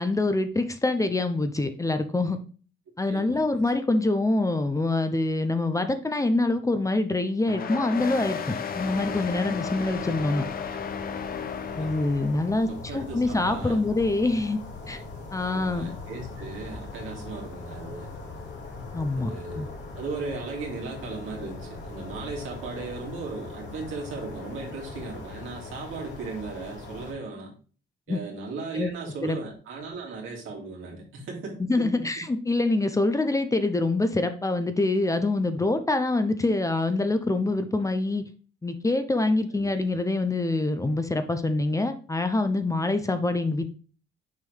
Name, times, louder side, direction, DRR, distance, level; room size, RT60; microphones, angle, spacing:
voice 1, 0.0-2.4 3.0-10.5 11.7-14.6 14.9-15.0 15.3-15.9 18.9-19.3 19.6-19.7 28.1-28.2 28.7-28.9 29.2-29.4 31.7-38.2 38.6-43.7, left 2 dB, 15° left, 9 dB, 0.7 m, -25 dB
voice 2, 3.1-3.6 9.1-9.2 10.1-10.3 11.8-12.1 12.6-13.8 15.4-18.1 19.2-27.5 28.1-32.1 39.5-40.0, right 4 dB, 85° right, -1 dB, 2.4 m, -37 dB
sound 1, 7.5-12.6, left 7 dB, 50° left, 0.7 m, -34 dB
sound 2, 8.7-27.1, left 3 dB, 65° left, 2.1 m, -41 dB
6.4 x 4.5 x 3.3 m, 0.39 s
cardioid pair, 90°, 20 cm